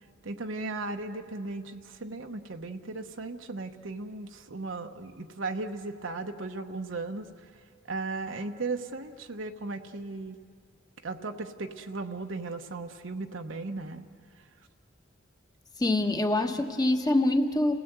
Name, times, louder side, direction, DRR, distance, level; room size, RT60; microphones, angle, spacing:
voice 1, 0.2-7.5 7.9-10.4 11.0-14.1 14.4-14.5 16.1-16.2, right 3 dB, 70° right, 5 dB, 0.9 m, -36 dB
voice 2, 15.8-17.8, left 1 dB, 20° left, 5 dB, 1.2 m, -25 dB
29.0 x 17.0 x 8.0 m, 2.2 s
head